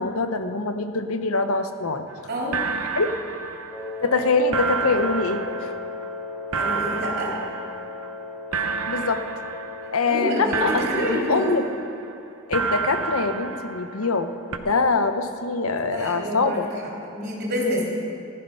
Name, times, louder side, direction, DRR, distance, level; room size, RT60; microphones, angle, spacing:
voice 1, 0.0-2.1 2.9-3.1 4.0-5.7 8.9-9.2 9.9-11.6 12.5-16.7, left 3 dB, 70° left, 8 dB, 0.9 m, -24 dB
sound 1, 2.1-2.2 2.5-4.2 4.5-8.3 8.5-10.2 10.5-12.2 12.5-14.3 14.5-14.6, right 5 dB, 75° right, 0.8 m, -30 dB
Wind instrument woodwind instrument, 3.7-11.0, left 4 dB, 10° left, 1.1 m, -36 dB
voice 2, 6.5-7.3 10.0-11.6 15.9-16.6 17.1-17.8, equal, 45° right, -4 dB, 3.7 m, -27 dB
15.0 x 12.0 x 5.6 m, 2.6 s
head